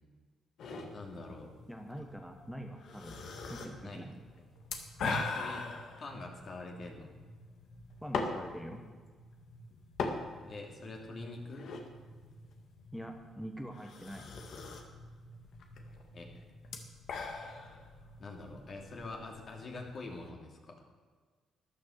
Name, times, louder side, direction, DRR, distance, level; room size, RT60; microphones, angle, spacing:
sound 1, 0.6-20.3, left 3 dB, 70° left, 1.9 m, -42 dB
voice 1, 0.9-1.5 3.8-4.0 5.1-5.6 6.0-7.1 10.4-11.7 16.1-16.5 18.2-20.8, left 2 dB, 50° left, 1 dB, 2.9 m, -45 dB
voice 2, 1.7-3.2 3.5-4.1 5.0-5.2 8.0-8.8 12.9-14.3, equal, ahead, 4 dB, 1.2 m, -44 dB
13.5 x 10.5 x 6.6 m, 1.5 s
cardioid pair, 90°, 0 cm